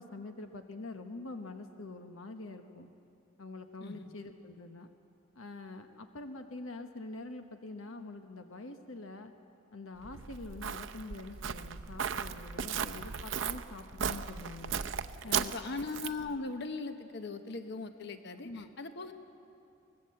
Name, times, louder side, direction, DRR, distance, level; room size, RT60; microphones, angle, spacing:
voice 1, 0.0-2.9 3.4-4.9 5.3-9.3 9.7-14.8 15.2-15.5 18.4-18.7, left 2 dB, 90° left, 6 dB, 1.1 m, -45 dB
Walk footsteps, 10.0-16.3, right 7 dB, 70° right, 0.7 m, -36 dB
voice 2, 15.2-19.1, left 3 dB, 55° left, 8 dB, 1.0 m, -39 dB
23.5 x 19.0 x 7.7 m, 2.7 s
head